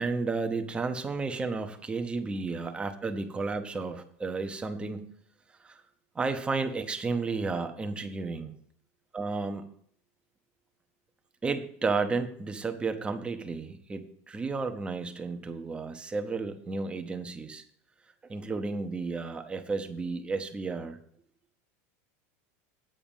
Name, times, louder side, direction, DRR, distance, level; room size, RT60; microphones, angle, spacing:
voice 1, 0.0-5.1 5.6-5.8 6.1-8.5 9.1-9.6 11.4-17.6 18.2-21.0, right 4 dB, 15° right, 7 dB, 0.8 m, -32 dB
8.8 x 4.9 x 7.1 m, 0.64 s
supercardioid pair, 145°, 8 cm